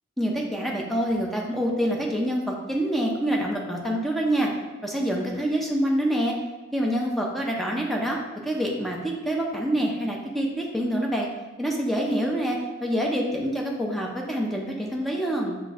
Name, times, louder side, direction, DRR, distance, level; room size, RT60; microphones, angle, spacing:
voice 1, 0.2-4.5 4.8-6.3 6.7-11.3 11.6-15.6, equal, ahead, -1 dB, 0.4 m, -26 dB
5.8 x 2.5 x 2.4 m, 1.3 s
head